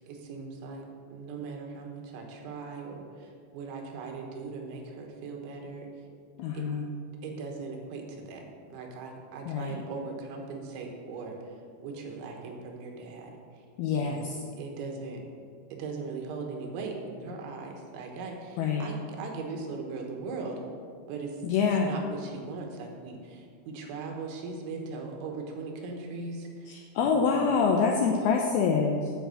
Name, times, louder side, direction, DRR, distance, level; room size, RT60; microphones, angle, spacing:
voice 1, 0.1-5.9 6.5-6.7 7.2-8.4 8.7-13.7 14.0-14.3 14.6-15.2 15.7-20.6 21.1-21.4 21.8-27.4, right 4 dB, 85° right, 2 dB, 3.6 m, -39 dB
voice 2, 6.4-6.9 9.5-9.8 13.8-14.4 18.6-18.9 21.4-21.9 26.7-29.1, left 5 dB, 85° left, 1 dB, 2.2 m, -26 dB
10.0 x 5.3 x 7.8 m, 2.2 s
omnidirectional pair, 5.3 m